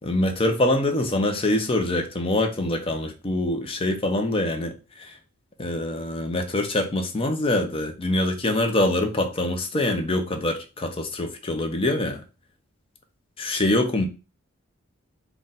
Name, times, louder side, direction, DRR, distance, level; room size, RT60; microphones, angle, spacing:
voice 1, 0.0-5.1 5.6-12.2 13.4-14.1, left 1 dB, 25° left, 0.6 m, -24 dB
3.9 x 2.3 x 3.9 m
head